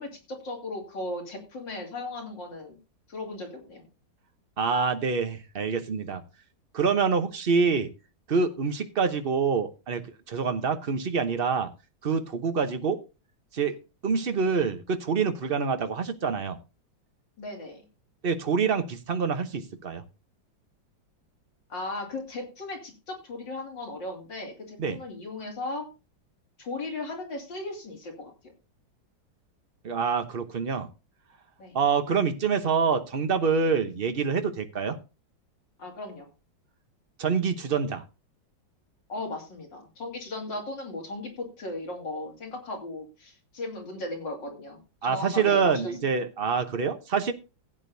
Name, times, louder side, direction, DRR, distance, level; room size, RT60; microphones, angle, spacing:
voice 1, 0.0-2.8 3.1-3.8 17.4-17.8 21.7-25.9 26.6-28.3 31.6-31.7 35.8-36.3 39.1-45.9, left 2 dB, 70° left, 0 dB, 3.5 m, -36 dB
voice 2, 4.6-6.2 6.7-7.9 8.3-11.7 12.0-13.0 13.5-13.8 14.0-16.6 18.2-20.0 24.8-25.0 29.8-30.9 31.7-35.0 37.2-38.0 45.0-47.3, right 5 dB, 40° right, 8 dB, 0.8 m, -26 dB
16.0 x 8.8 x 2.7 m, 0.30 s
omnidirectional pair, 2.1 m